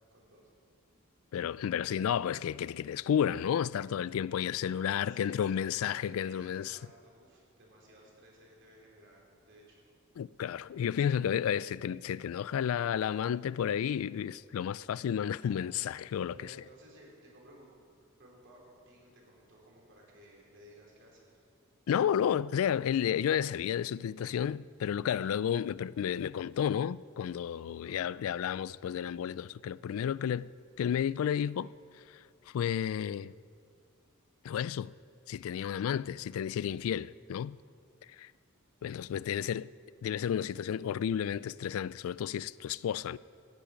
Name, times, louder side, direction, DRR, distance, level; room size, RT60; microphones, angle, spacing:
voice 1, 0.1-0.5 4.6-9.9 15.2-15.7 16.3-17.7 18.2-21.4 27.6-28.0, right 1 dB, 60° right, 3.7 m, -57 dB
voice 2, 1.3-6.8 10.2-16.3 21.9-30.5 30.8-31.7 32.5-33.3 34.4-34.9 35.3-37.6 38.2-38.3 38.8-39.7 40.0-43.2, left 9 dB, 75° left, 0.3 m, -32 dB
14.5 x 7.0 x 9.6 m
head